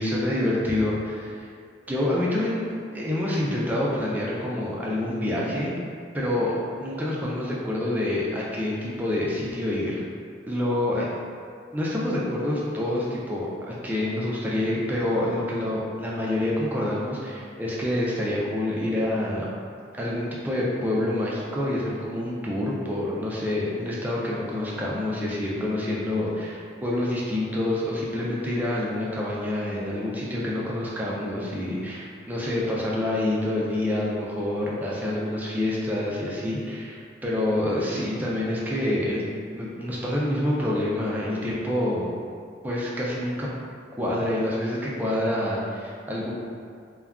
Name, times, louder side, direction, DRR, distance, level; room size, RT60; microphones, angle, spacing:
voice 1, 0.0-1.5 1.9-5.8 6.1-10.0 10.5-11.1 11.7-19.5 20.0-39.2 39.5-42.1 42.6-43.5 44.0-46.3, left 1 dB, 10° right, -5 dB, 0.3 m, -27 dB
2.3 x 2.2 x 3.5 m, 2.2 s
head